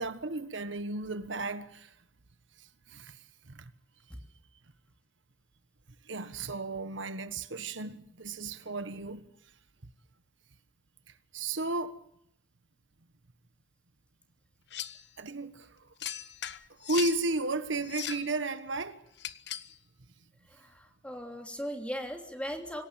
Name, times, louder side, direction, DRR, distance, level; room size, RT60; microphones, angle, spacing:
voice 1, 0.0-1.9 2.6-3.2 3.5-3.7 6.0-9.3 11.3-12.0 15.2-15.9 16.8-19.0, right 2 dB, 80° right, 1.5 m, -34 dB
sound 1, 14.7-15.0 16.0-17.2 17.8-18.3 19.2-19.7, left 10 dB, 60° left, 1.2 m, -38 dB
voice 2, 20.5-22.8, equal, 5° left, 3.3 m, -38 dB
26.0 x 17.5 x 9.0 m
head